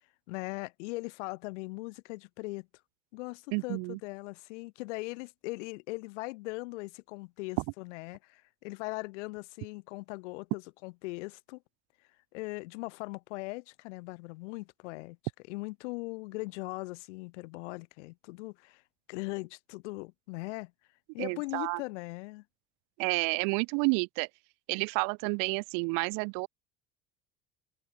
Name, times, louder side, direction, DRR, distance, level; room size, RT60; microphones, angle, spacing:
voice 1, 0.3-2.7 3.1-11.6 12.3-18.8 19.1-20.7 21.1-22.4, left 24 dB, 70° left, 2.5 m, -40 dB
voice 2, 3.5-4.0 21.2-21.8 23.0-24.3 24.7-26.5, right 39 dB, 60° right, 0.5 m, -30 dB
open air
hypercardioid pair, 60°, 37 cm